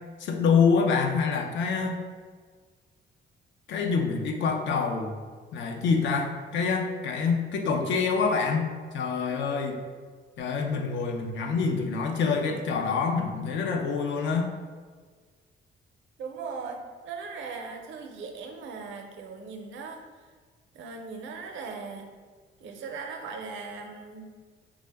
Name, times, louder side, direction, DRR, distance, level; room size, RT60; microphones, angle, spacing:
voice 1, 0.2-2.0 3.7-5.2 5.5-8.7 8.9-9.8 10.4-14.5, left 5 dB, 70° left, 3 dB, 0.5 m, -26 dB
voice 2, 16.2-20.0 20.7-22.1 22.6-24.4, right 4 dB, 70° right, 4 dB, 0.5 m, -39 dB
3.5 x 2.0 x 3.3 m, 1.5 s
cardioid pair, 90°, 20 cm